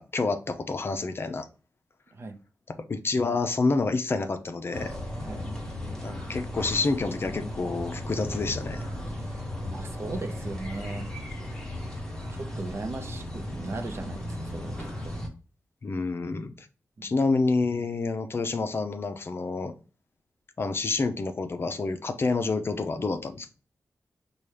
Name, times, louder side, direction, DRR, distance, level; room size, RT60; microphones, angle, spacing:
voice 1, 0.0-1.5 2.7-4.9 6.0-8.9 15.8-16.7 17.0-19.7 20.6-23.5, left 3 dB, 45° left, 0.5 m, -28 dB
sound 1, 4.7-15.3, left 1 dB, 10° left, 1.0 m, -36 dB
voice 2, 9.1-11.1 12.3-14.8 15.0-15.2 17.0-17.1, right 3 dB, 50° right, 0.6 m, -38 dB
5.5 x 2.3 x 3.2 m
wide cardioid pair, 115°, 6 cm